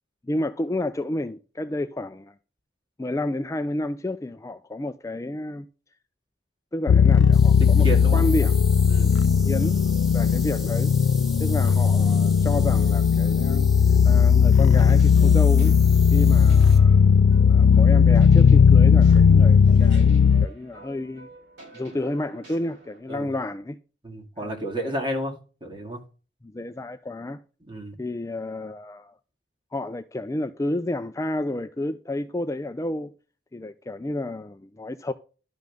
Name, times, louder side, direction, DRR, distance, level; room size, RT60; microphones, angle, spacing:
voice 1, 0.2-2.3 3.0-5.7 6.7-8.5 9.4-9.8 10.1-10.9 11.4-13.7 14.0-15.7 16.1-17.0 17.5-21.3 21.7-23.8 24.4-24.9 26.4-27.4 28.0-29.1 29.7-33.1 33.5-35.1, left 1 dB, 15° left, 0.4 m, -30 dB
sound 1, 6.9-20.5, left 6 dB, 85° left, 0.3 m, -17 dB
sound 2, 7.3-16.8, left 1 dB, ahead, 1.1 m, -42 dB
voice 2, 7.6-8.2 8.9-9.2 23.1-23.3 24.0-25.3 25.6-26.0 27.7-28.0, right 1 dB, 25° right, 2.0 m, -31 dB
sound 3, 14.7-23.0, right 1 dB, 65° right, 5.6 m, -46 dB
11.5 x 5.6 x 3.5 m
head